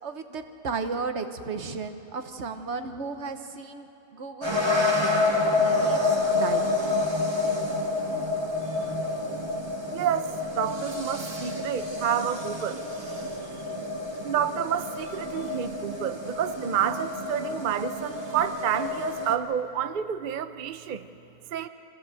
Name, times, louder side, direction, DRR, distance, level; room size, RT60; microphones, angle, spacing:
voice 1, 0.0-4.9 5.5-6.8, right 4 dB, 50° right, 7 dB, 1.3 m, -35 dB
sound 1, 4.4-19.4, left 2 dB, 20° right, 1.3 m, -28 dB
voice 2, 9.9-12.9 14.2-21.1 21.5-21.7, right 8 dB, 70° right, 10 dB, 0.4 m, -29 dB
25.5 x 16.0 x 7.7 m, 2.8 s
omnidirectional pair, 1.7 m